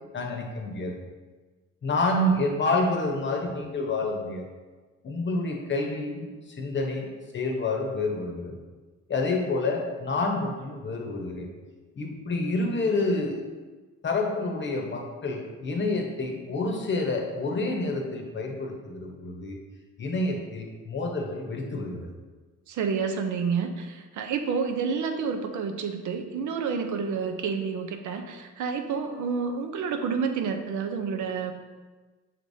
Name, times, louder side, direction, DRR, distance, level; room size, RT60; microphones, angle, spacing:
voice 1, 0.1-0.9 1.8-4.5 5.0-7.1 7.3-8.6 9.1-11.5 12.0-13.5 14.0-19.6 20.0-22.1, left 2 dB, 40° left, 1 dB, 0.9 m, -28 dB
voice 2, 22.7-31.5, right 5 dB, 75° right, 6 dB, 0.6 m, -29 dB
5.8 x 3.3 x 2.7 m, 1.3 s
cardioid pair, 90°, 30 cm